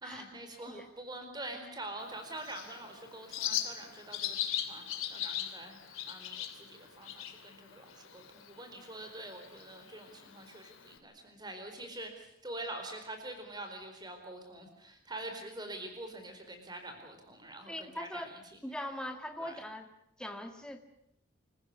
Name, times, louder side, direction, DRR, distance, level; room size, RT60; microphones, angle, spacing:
voice 1, 0.0-18.3 19.4-19.6, right 2 dB, 20° right, 6 dB, 4.3 m, -45 dB
Bird, 2.0-11.0, left 10 dB, 85° left, 2.9 m, -40 dB
voice 2, 17.7-18.3 18.6-19.9 20.2-20.8, left 1 dB, 5° left, 5 dB, 1.7 m, -41 dB
26.5 x 15.0 x 9.6 m, 0.75 s
head